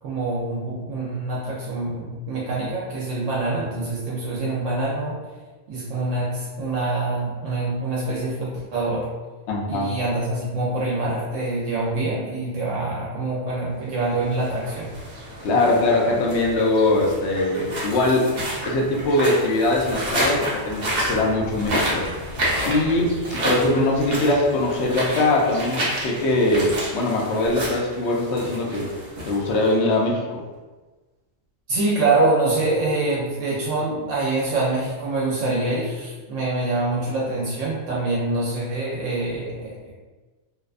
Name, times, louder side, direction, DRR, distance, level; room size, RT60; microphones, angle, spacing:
voice 1, 0.0-5.2 5.7-9.1 9.6-14.9 31.7-39.9, right 2 dB, 75° right, -5 dB, 0.9 m, -25 dB
voice 2, 9.5-9.9 15.4-18.3 18.6-22.0 22.6-28.9 29.2-30.4, left 2 dB, 65° left, -2 dB, 0.8 m, -21 dB
sound 1, 14.2-29.9, right 1 dB, 50° right, 0.6 m, -30 dB
2.6 x 2.1 x 2.4 m, 1.2 s
omnidirectional pair, 1.3 m